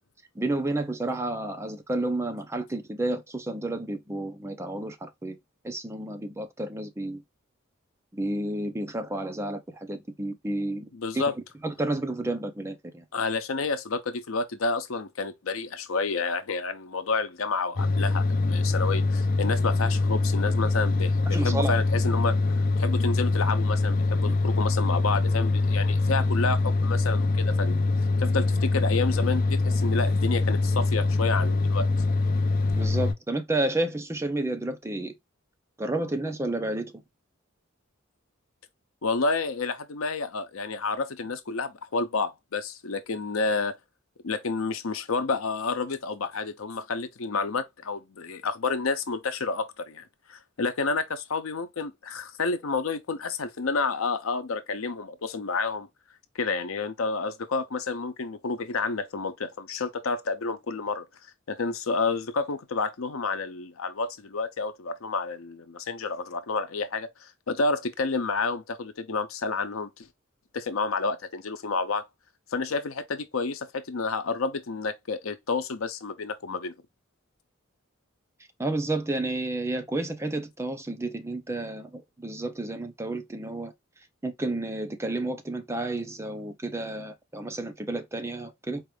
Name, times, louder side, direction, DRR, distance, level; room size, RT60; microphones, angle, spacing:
voice 1, 0.4-5.4 5.6-7.2 8.1-10.9 11.1-11.2 11.6-13.0 21.3-21.7 32.7-35.1 35.8-37.0 78.6-83.7 84.2-88.8, right 2 dB, 15° right, 0.6 m, -31 dB
voice 2, 10.9-11.3 13.1-22.3 22.8-27.9 28.2-31.9 39.0-43.8 44.2-50.0 50.3-55.9 56.3-61.1 61.5-70.1 70.5-72.1 72.5-76.8, left 4 dB, 80° left, 0.7 m, -30 dB
sound 1, 17.8-33.1, left 3 dB, 45° left, 0.5 m, -24 dB
4.5 x 2.5 x 3.2 m
head